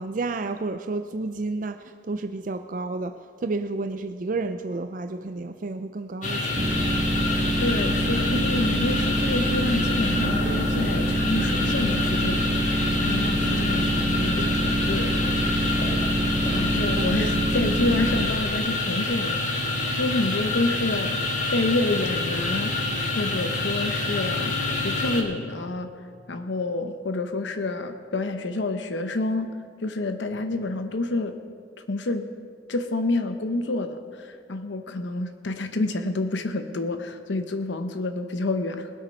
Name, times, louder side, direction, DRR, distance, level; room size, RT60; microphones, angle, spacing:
voice 1, 0.0-6.5 17.0-17.3, right 3 dB, 45° right, 9 dB, 0.4 m, -31 dB
sound 1, 6.2-25.2, left 2 dB, 40° left, 1.7 m, -27 dB
sound 2, 6.6-18.2, right 1 dB, 25° right, 1.0 m, -26 dB
voice 2, 7.6-15.3 16.5-19.6 19.9-21.2 21.5-22.7 23.2-25.9 26.3-29.5 29.8-31.4 31.9-32.2 32.7-38.9, left 2 dB, 75° left, 8 dB, 0.8 m, -28 dB
21.0 x 8.4 x 5.3 m, 2.1 s
head